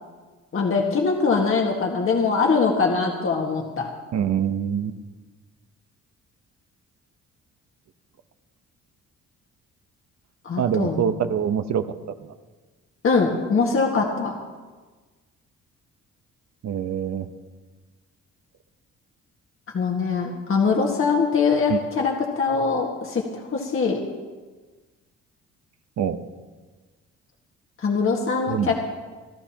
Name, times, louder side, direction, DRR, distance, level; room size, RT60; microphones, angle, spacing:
voice 1, 0.5-3.9 10.4-11.1 13.0-14.3 19.7-24.0 27.8-28.7, left 4 dB, 45° left, -1 dB, 1.8 m, -22 dB
voice 2, 4.1-4.9 10.6-11.8 16.6-17.3 21.7-21.8 26.0-26.2 28.5-28.7, right 8 dB, 60° right, 9 dB, 1.0 m, -24 dB
28.5 x 11.5 x 3.0 m, 1.3 s
cardioid pair, 90°, 30 cm